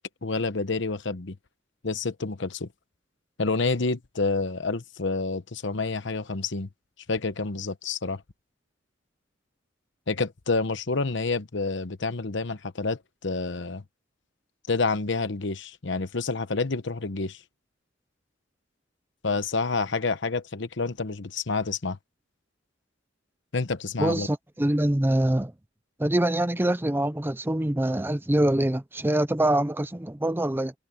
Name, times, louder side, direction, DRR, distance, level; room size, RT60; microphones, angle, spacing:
voice 1, 0.2-1.4 1.8-2.7 3.4-6.7 7.1-8.2 10.1-13.8 14.7-17.4 19.2-22.0 23.5-24.3, left 3 dB, 65° left, 1.0 m, -28 dB
voice 2, 24.0-25.5 26.0-30.7, right 1 dB, 10° right, 0.6 m, -24 dB
head